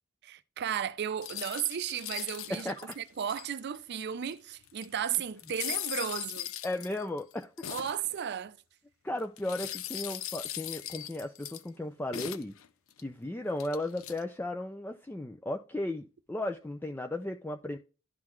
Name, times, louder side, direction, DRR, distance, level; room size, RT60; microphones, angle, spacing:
voice 1, 0.2-6.5 7.7-8.6, right 9 dB, 55° right, 0.4 m, -34 dB
sound 1, 1.2-3.8 4.3-4.4 4.6-8.1 9.4-11.7 12.1-13.0 13.6-14.2, left 12 dB, 80° left, 0.5 m, -39 dB
voice 2, 2.5-3.0 6.6-7.5 9.0-12.6 13.0-17.8, left 1 dB, 10° left, 0.3 m, -35 dB
11.5 x 3.8 x 3.1 m
head